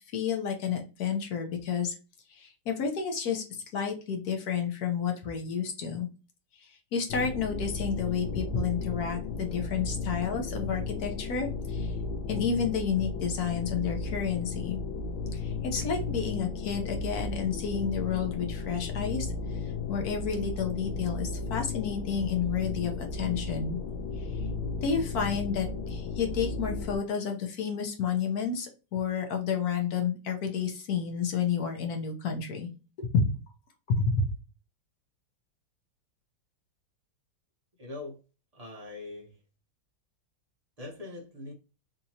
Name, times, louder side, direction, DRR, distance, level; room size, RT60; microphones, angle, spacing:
voice 1, 0.1-1.9 2.3-3.4 3.7-6.1 6.9-11.9 12.3-14.8 15.3-19.3 19.9-23.8 24.8-32.7 33.0-33.3 33.9-34.3, left 6 dB, 60° left, 1.1 m, -30 dB
sound 1, 7.1-27.0, left 4 dB, 90° left, 1.5 m, -34 dB
voice 2, 37.8-38.2 38.5-39.4 40.8-41.5, left 2 dB, 50° right, 0.4 m, -42 dB
3.9 x 2.8 x 2.7 m
omnidirectional pair, 2.2 m